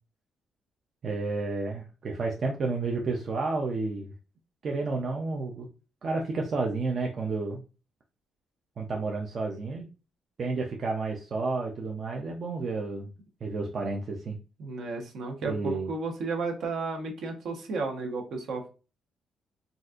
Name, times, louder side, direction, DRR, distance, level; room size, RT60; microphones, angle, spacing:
voice 1, 1.0-4.1 4.6-5.7 6.0-7.6 8.8-9.9 10.4-13.1 13.4-14.4 15.5-15.9, right 3 dB, 40° right, 0 dB, 0.5 m, -31 dB
voice 2, 14.6-18.7, right 3 dB, 65° right, 2 dB, 0.9 m, -33 dB
4.0 x 2.4 x 2.4 m, 0.33 s
cardioid pair, 150°, 0 cm